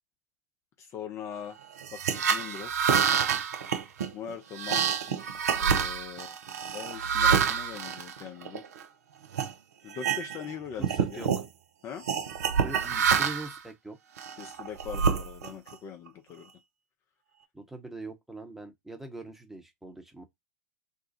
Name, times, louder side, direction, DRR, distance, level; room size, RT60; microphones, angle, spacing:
voice 1, 0.8-1.6 1.9-2.9 4.1-6.4 6.7-8.6 9.8-11.3 11.8-12.0 14.4-16.5, left 8 dB, 35° left, 0.7 m, -41 dB
sound 1, 1.8-8.8 9.3-9.5 9.9-10.5 10.8-11.5 12.1-13.6 14.2-15.7, right 7 dB, 70° right, 0.6 m, -27 dB
voice 2, 10.8-11.3 12.6-14.0 17.5-20.2, right 2 dB, 5° right, 1.0 m, -42 dB
2.6 x 2.3 x 4.0 m
hypercardioid pair, 95°, 9 cm